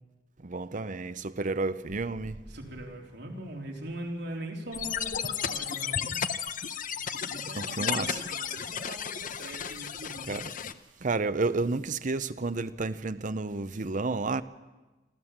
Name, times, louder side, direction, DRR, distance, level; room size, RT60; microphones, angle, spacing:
voice 1, 0.4-2.4 7.6-8.2 10.3-10.5 11.0-14.4, right 3 dB, 45° right, 0.7 m, -31 dB
voice 2, 2.5-6.2 7.3-10.3, right 1 dB, 65° right, 3.8 m, -41 dB
sound 1, 4.7-10.7, left 7 dB, 50° left, 0.8 m, -33 dB
25.5 x 14.0 x 7.4 m
head